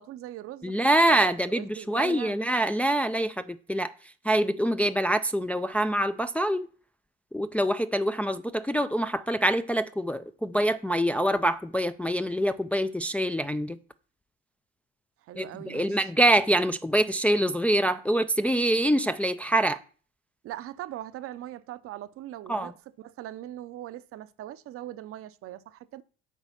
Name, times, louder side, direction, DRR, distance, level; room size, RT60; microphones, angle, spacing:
voice 1, 0.0-2.4 15.2-16.1 20.4-26.0, right 13 dB, 50° right, 0.7 m, -41 dB
voice 2, 0.6-3.9 4.2-6.7 7.3-13.8 15.4-19.8 22.5-22.7, right 1 dB, 5° left, 0.4 m, -25 dB
8.3 x 4.8 x 7.2 m
hypercardioid pair, 75°, 30 cm